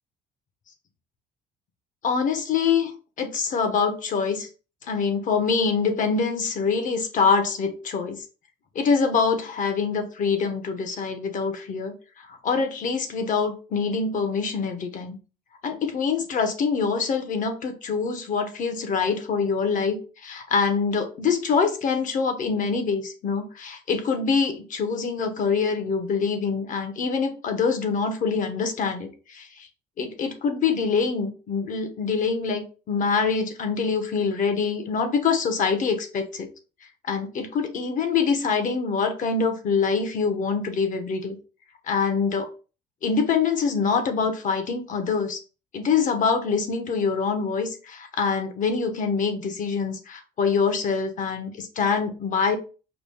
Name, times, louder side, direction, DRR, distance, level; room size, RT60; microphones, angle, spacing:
voice 1, 2.0-4.5 4.9-8.2 8.7-11.9 12.4-15.2 15.6-29.5 30.0-36.5 37.1-41.4 41.9-42.5 43.0-45.4 45.7-52.6, left 5 dB, 50° left, 1.0 m, -25 dB
5.0 x 2.3 x 3.5 m
cardioid pair, 110°, 17 cm